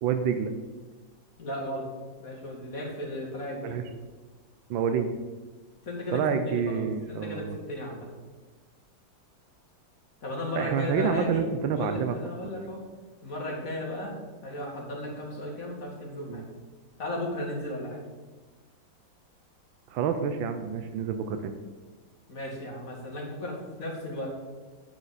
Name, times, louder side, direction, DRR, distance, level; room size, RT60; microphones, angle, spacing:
voice 1, 0.0-0.5 3.6-3.8 4.7-5.1 6.1-7.6 10.5-12.2 12.5-12.7 16.3-16.4 19.9-21.6, right 7 dB, 90° right, 8 dB, 1.5 m, -28 dB
voice 2, 1.4-1.9 2.2-3.8 5.8-8.1 10.2-11.4 11.7-12.8 13.2-16.4 17.0-18.0 22.3-24.3, left 1 dB, 45° left, -2 dB, 2.7 m, -35 dB
10.0 x 8.7 x 4.2 m, 1.3 s
omnidirectional pair, 2.1 m